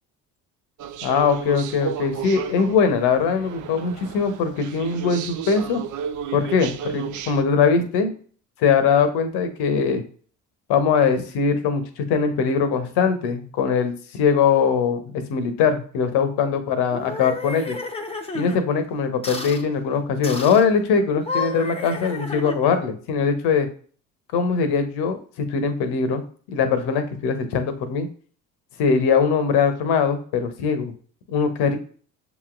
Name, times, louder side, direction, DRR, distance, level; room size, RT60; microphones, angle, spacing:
sound 1, 0.8-7.4, right 9 dB, 45° right, 0.5 m, -33 dB
voice 1, 1.0-5.8 6.3-8.1 8.6-10.0 10.7-17.8 18.3-23.7 24.3-26.2 26.5-28.1 28.8-30.9 31.3-31.8, left 6 dB, 65° left, 9 dB, 0.9 m, -21 dB
sound 2, 16.9-18.6 19.2-19.6 20.2-20.7 21.1-22.9, left 3 dB, 15° left, 0.8 m, -31 dB
6.8 x 3.0 x 2.5 m, 0.43 s
hypercardioid pair, 55°, 42 cm